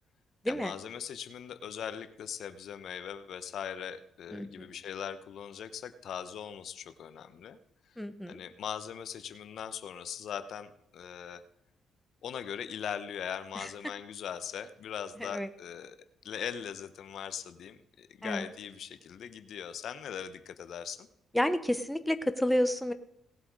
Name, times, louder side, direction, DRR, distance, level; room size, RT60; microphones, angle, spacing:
voice 1, 0.5-7.6 8.3-11.4 12.2-16.0 16.2-21.1, left 8 dB, 70° left, 11 dB, 0.8 m, -40 dB
voice 2, 4.3-4.7 8.0-8.4 13.6-13.7 15.2-15.5 18.2-18.5 21.3-22.9, equal, 5° left, 9 dB, 0.9 m, -30 dB
18.0 x 7.8 x 4.7 m, 0.78 s
cardioid pair, 90°, 0 cm